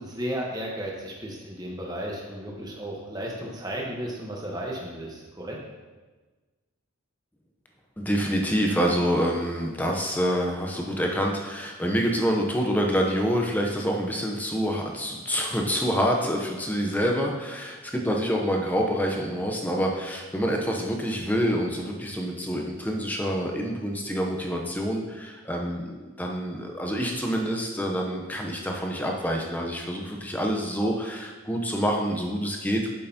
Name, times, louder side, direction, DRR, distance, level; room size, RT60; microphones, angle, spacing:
voice 1, 0.0-5.6, right 1 dB, 20° right, -2 dB, 1.1 m, -34 dB
voice 2, 8.0-32.9, equal, 10° left, 1 dB, 0.7 m, -27 dB
8.6 x 6.5 x 2.8 m, 1.3 s
head